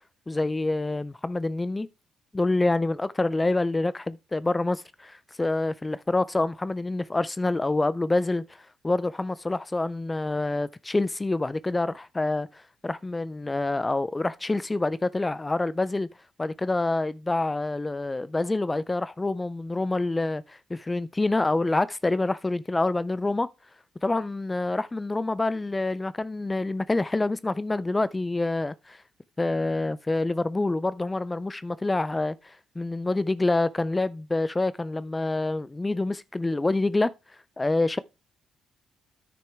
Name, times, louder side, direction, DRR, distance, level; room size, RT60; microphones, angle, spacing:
voice 1, 0.3-1.9 2.3-12.5 12.8-16.1 16.4-23.5 24.0-29.0 29.4-37.1 37.6-38.0, left 2 dB, 20° left, 0.3 m, -27 dB
10.0 x 6.1 x 3.4 m
cardioid pair, 90°, 0 cm